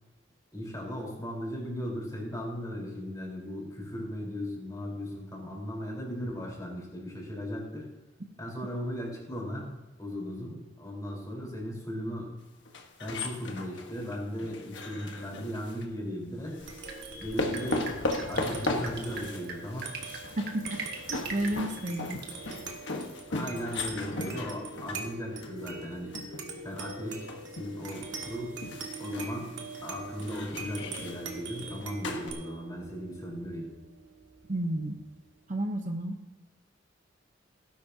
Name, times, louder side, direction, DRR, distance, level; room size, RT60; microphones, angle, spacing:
voice 1, 0.5-7.9 8.4-9.7 10.0-12.3 13.0-16.6 17.1-17.9 18.3-19.9 23.3-26.1 26.6-27.3 27.6-28.6 29.0-29.5 29.8-33.7, equal, 20° left, -3 dB, 4.2 m, -37 dB
sound 1, 12.7-15.8 16.6-32.3, left 2 dB, 75° left, 1.3 m, -37 dB
sound 2, 16.4-35.3, right 4 dB, 85° right, 1.7 m, -43 dB
Drip, 16.6-23.2, right 4 dB, 60° right, 1.8 m, -44 dB
voice 2, 20.4-20.8 21.1-22.7 34.5-35.0 35.5-36.2, right 1 dB, 45° right, 4 dB, 0.9 m, -32 dB
17.5 x 10.5 x 2.8 m, 1.1 s
head